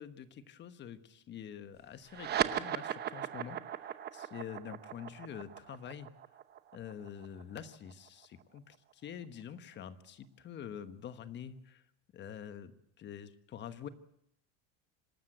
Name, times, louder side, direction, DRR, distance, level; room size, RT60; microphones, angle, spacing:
voice 1, 0.0-6.1 6.7-11.8 12.1-13.9, left 9 dB, 35° left, 12 dB, 1.3 m, -46 dB
sound 1, 2.1-8.9, right 10 dB, 30° right, 0.9 m, -38 dB
26.0 x 13.0 x 7.9 m, 0.74 s
cardioid pair, 150°, 33 cm